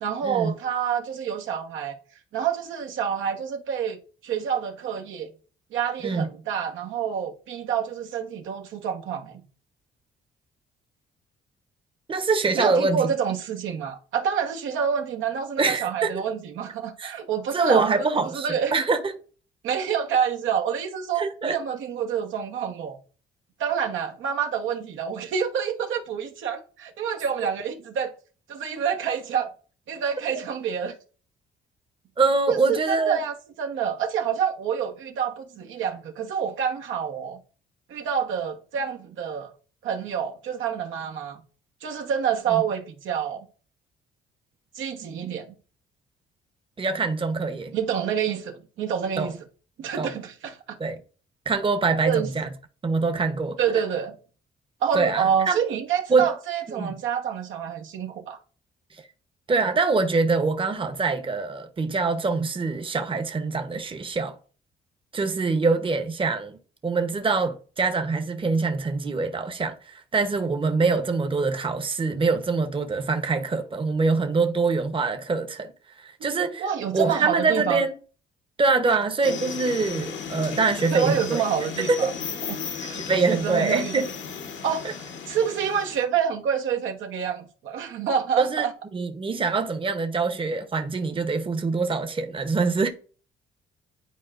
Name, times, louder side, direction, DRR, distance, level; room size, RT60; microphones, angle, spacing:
voice 1, 0.0-2.0 2.3-4.0 4.2-5.3 5.7-9.4 12.5-18.8 19.6-23.0 23.6-28.1 28.5-29.5 29.9-30.9 32.5-37.4 37.9-39.5 39.8-41.4 41.8-43.5 44.7-45.5 47.7-49.4 49.8-50.8 52.0-52.3 53.6-54.2 54.8-58.4 76.4-77.8 80.9-82.1 82.5-83.9 84.6-85.0 85.3-88.7, right 8 dB, 80° right, 1.1 m, -27 dB
voice 2, 12.1-13.0 15.6-16.2 17.0-17.1 17.5-19.1 21.2-21.6 32.2-33.2 42.5-42.6 46.8-47.7 49.2-49.3 50.0-50.1 50.8-51.0 51.5-52.5 52.8-53.8 54.9-55.6 56.1-56.3 56.7-56.9 59.5-64.3 65.1-66.6 66.8-75.7 76.0-77.9 78.6-81.4 81.8-82.1 82.9-84.1 88.4-88.7 88.9-92.9, right 4 dB, 25° right, 0.9 m, -24 dB
sound 1, 79.2-86.1, left 6 dB, 70° left, 1.1 m, -35 dB
10.5 x 4.4 x 2.5 m
cardioid pair, 90°, 20 cm